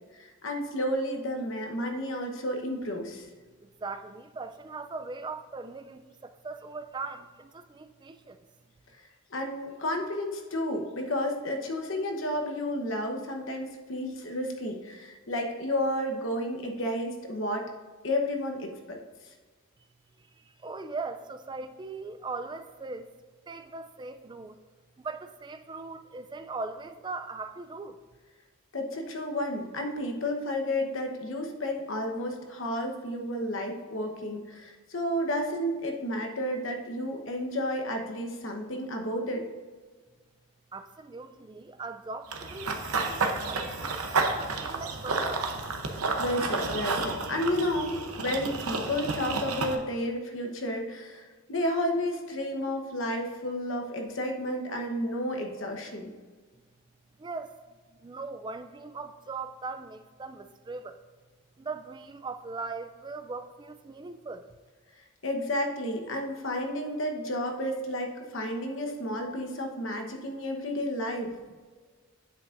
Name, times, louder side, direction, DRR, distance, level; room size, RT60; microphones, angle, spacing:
voice 1, 0.2-3.3 9.3-17.7 18.0-19.0 28.7-39.4 46.2-56.1 65.2-71.3, left 1 dB, 60° left, 3 dB, 1.0 m, -31 dB
voice 2, 3.6-8.5 20.2-23.1 23.5-24.6 25.0-28.0 40.7-42.7 42.9-45.5 57.2-61.0 61.6-64.5, right 3 dB, 20° right, 9 dB, 0.3 m, -40 dB
Run / Bird vocalization bird call bird song, 42.3-49.8, right 3 dB, 85° right, 0.8 m, -31 dB
9.2 x 7.7 x 2.6 m, 1.4 s
head